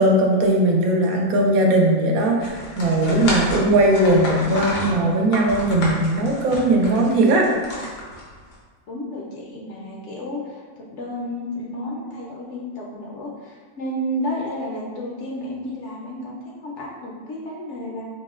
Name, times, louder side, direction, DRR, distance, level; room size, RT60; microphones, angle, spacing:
voice 1, 0.0-7.5, right 1 dB, 80° right, 0 dB, 1.0 m, -18 dB
sound 1, 2.4-8.5, left 1 dB, 85° left, 1.3 m, -31 dB
voice 2, 8.9-18.1, equal, 65° left, -3 dB, 0.8 m, -31 dB
5.4 x 2.1 x 2.3 m, 1.5 s
omnidirectional pair, 1.5 m